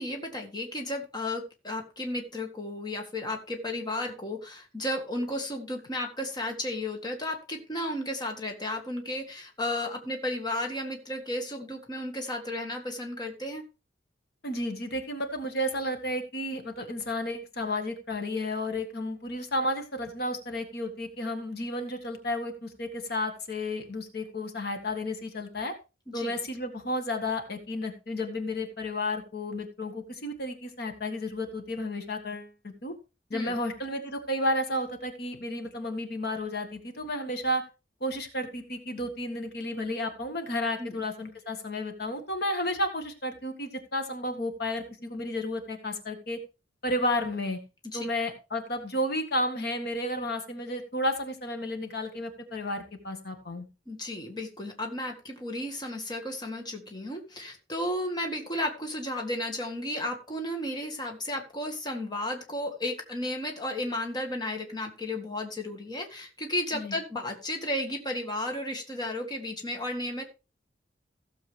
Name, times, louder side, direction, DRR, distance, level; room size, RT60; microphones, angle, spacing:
voice 1, 0.0-13.6 26.1-26.4 33.3-33.5 40.8-41.0 47.8-48.1 53.9-70.2, left 1 dB, 25° left, 3 dB, 1.7 m, -33 dB
voice 2, 14.4-25.7 26.1-32.5 32.8-32.9 33.3-37.6 38.0-46.4 46.8-47.6 47.9-53.7 66.7-67.0, left 1 dB, 60° left, 6 dB, 1.7 m, -32 dB
16.0 x 7.1 x 3.4 m, 0.29 s
head